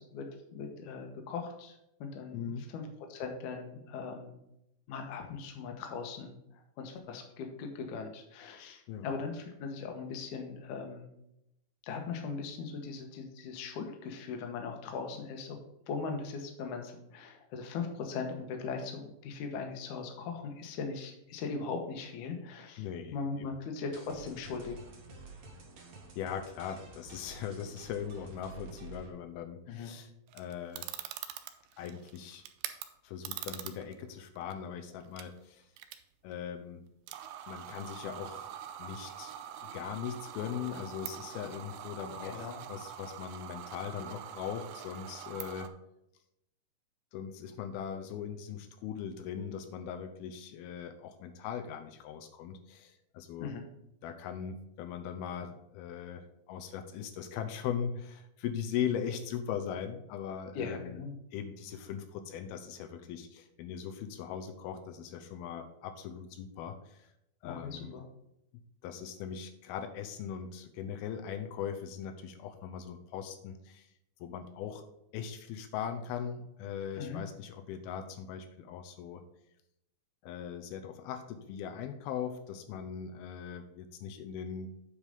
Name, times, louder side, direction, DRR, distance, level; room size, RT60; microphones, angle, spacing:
voice 1, 0.1-4.4 4.9-6.3 6.8-11.1 11.8-15.6 15.9-22.9 23.1-24.8 29.7-29.9 42.2-42.6 53.4-53.7 60.6-61.1 67.4-68.1 77.0-77.2, left 5 dB, 65° left, 4 dB, 2.3 m, -39 dB
voice 2, 2.3-2.7 8.9-9.1 22.8-23.2 26.2-30.9 31.8-32.4 33.0-35.7 36.2-36.8 37.5-38.5 38.8-39.3 39.6-45.7 47.1-53.5 54.0-61.0 61.3-67.1 67.4-67.9 68.8-73.9 74.2-74.8 75.1-79.2 80.2-84.7, left 8 dB, 85° left, 7 dB, 2.6 m, -40 dB
sound 1, 23.9-29.1, right 3 dB, 55° right, 1.9 m, -50 dB
sound 2, 30.3-32.9 33.3-34.0 34.4-34.5 35.0-35.2 35.8-36.0 36.3-36.4 37.1-45.7, right 11 dB, 90° right, 2.6 m, -44 dB
8.5 x 4.9 x 5.2 m, 0.82 s
omnidirectional pair, 4.3 m